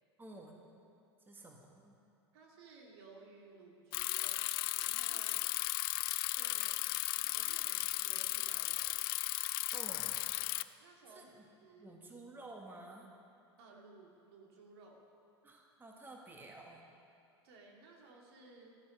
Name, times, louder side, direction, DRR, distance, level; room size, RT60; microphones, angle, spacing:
voice 1, 0.2-0.6 1.2-1.9 5.1-5.3 9.7-10.2 11.1-11.5 11.8-13.1 15.4-16.8, right 2 dB, 15° right, 0 dB, 1.6 m, -52 dB
voice 2, 2.3-4.4 4.7-5.3 6.3-6.8 7.1-9.0 10.8-11.3 11.6-11.9 13.6-15.1 17.4-18.8, right 3 dB, 60° right, 0 dB, 2.5 m, -58 dB
Bicycle, 3.9-10.6, left 18 dB, 55° left, 0.4 m, -35 dB
14.5 x 12.5 x 5.4 m, 2.5 s
figure-of-eight pair, 85°, 15 cm